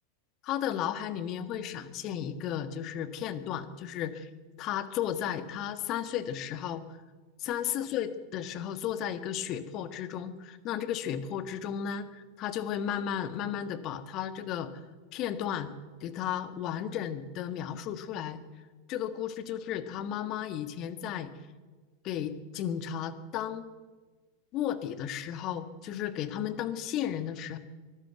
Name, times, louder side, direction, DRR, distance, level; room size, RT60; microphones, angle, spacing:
voice 1, 0.4-4.3 4.6-6.8 7.4-14.7 15.1-15.7 16.0-18.4 18.9-21.3 22.0-23.6 24.5-27.6, left 9 dB, 40° left, 11 dB, 1.6 m, -34 dB
23.5 x 14.0 x 8.2 m, 1.3 s
figure-of-eight pair, 90°, 0 cm